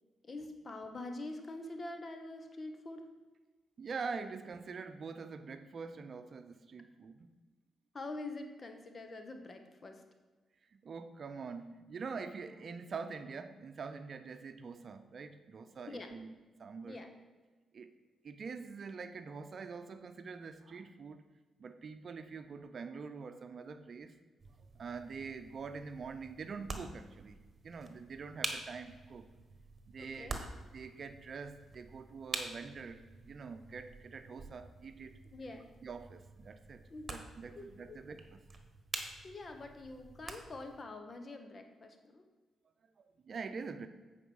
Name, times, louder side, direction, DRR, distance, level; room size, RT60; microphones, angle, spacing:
voice 1, 0.2-3.1 7.9-10.0 15.9-16.1 16.8-17.1 30.0-30.4 35.3-35.7 36.9-37.1 37.5-38.0 39.2-42.2, left 2 dB, 45° left, 6 dB, 1.2 m, -45 dB
voice 2, 3.8-7.3 10.7-16.3 16.6-17.0 17.7-17.9 18.2-21.2 21.6-24.1 24.7-27.4 27.6-29.3 29.9-30.3 30.7-35.2 35.8-36.8 37.1-38.4 43.0-43.9, right 5 dB, 55° right, 9 dB, 0.7 m, -45 dB
sound 1, 24.4-40.8, right 3 dB, 40° right, 1.3 m, -47 dB
8.5 x 5.0 x 5.4 m, 1.3 s
supercardioid pair, 55°, 0 cm